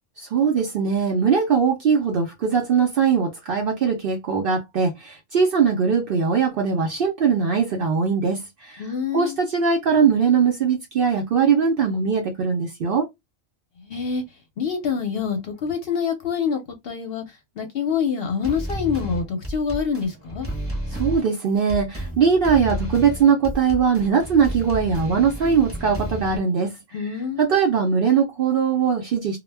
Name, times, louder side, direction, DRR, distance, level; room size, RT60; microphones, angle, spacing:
voice 1, 0.2-8.8 9.1-13.1 21.0-26.8 27.4-29.4, right 6 dB, 60° right, 0.6 m, -21 dB
voice 2, 8.8-9.4 13.8-14.2 14.6-20.5 26.9-27.5, left 6 dB, 60° left, 0.7 m, -26 dB
sound 1, 18.4-26.4, equal, 15° right, 0.6 m, -31 dB
2.2 x 2.1 x 3.2 m
omnidirectional pair, 1.3 m